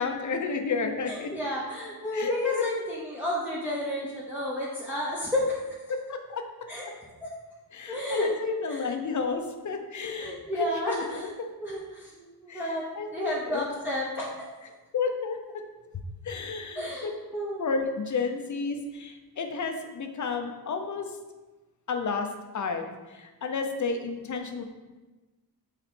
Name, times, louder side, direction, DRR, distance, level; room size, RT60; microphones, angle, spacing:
voice 1, 0.0-1.3 2.1-2.6 5.9-6.4 7.7-11.5 12.5-13.7 14.9-15.4 16.2-17.1 17.6-21.2 21.9-22.3 22.5-24.6, left 4 dB, 50° left, 5 dB, 0.8 m, -31 dB
voice 2, 1.1-5.5 6.7-6.9 7.2-7.3 7.9-8.4 8.7-8.9 10.0-11.3 11.6-12.9 13.1-14.3 16.8-17.6, left 1 dB, 5° right, -7 dB, 1.0 m, -31 dB
8.1 x 4.2 x 4.4 m, 1.2 s
wide cardioid pair, 150°, 38 cm